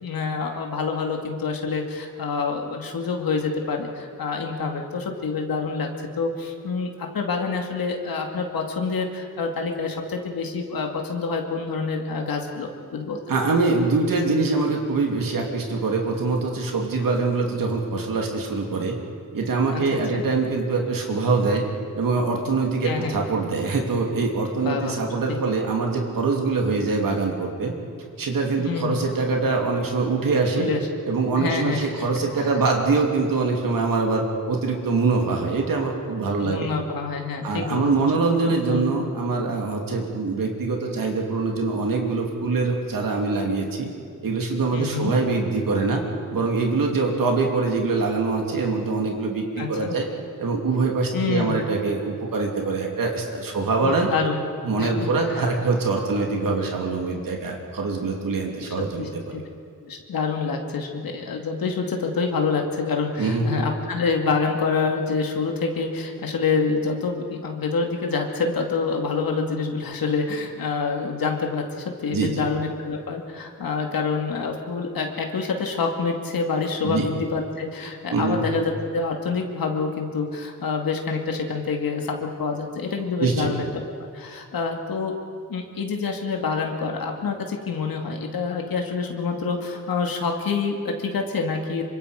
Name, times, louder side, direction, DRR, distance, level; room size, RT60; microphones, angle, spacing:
voice 1, 0.0-5.9 6.2-13.3 19.7-19.8 20.1-20.2 22.8-23.1 24.6-25.0 25.3-25.4 28.6-29.0 30.6-30.8 31.4-32.1 32.4-32.5 36.4-38.1 38.5-38.9 44.7-45.1 49.6-49.9 51.1-51.6 53.8-54.4 54.8-55.4 59.0-59.4 59.8-83.8 84.1-85.1 85.5-91.8, left 4 dB, 85° left, 2 dB, 2.5 m, -27 dB
voice 2, 13.3-19.0 19.3-21.6 22.0-27.8 28.2-30.7 31.1-36.7 37.4-43.9 44.2-46.0 46.3-50.1 50.4-54.1 54.6-59.1 63.2-63.5 72.1-72.4 76.8-77.1 78.1-78.4 83.2-83.6, right 3 dB, 75° right, 0 dB, 3.0 m, -24 dB
27.0 x 24.5 x 5.2 m, 2.3 s
wide cardioid pair, 170°, 34 cm